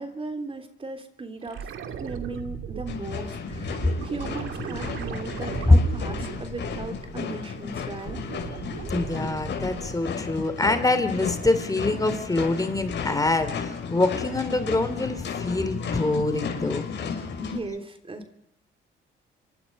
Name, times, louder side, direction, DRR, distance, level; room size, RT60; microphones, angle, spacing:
voice 1, 0.0-1.7 2.0-3.8 4.0-8.2 17.4-18.3, right 3 dB, 25° right, 7 dB, 3.4 m, -37 dB
sound 1, 1.4-7.2 7.6-10.1 12.6-12.7, right 7 dB, 80° right, 2.6 m, -37 dB
sound 2, 2.9-17.6, left 6 dB, 65° left, 6.1 m, -34 dB
voice 2, 8.9-16.9, left 2 dB, 15° left, 10 dB, 3.1 m, -24 dB
28.0 x 24.0 x 5.5 m, 0.78 s
cardioid pair, 90°, 20 cm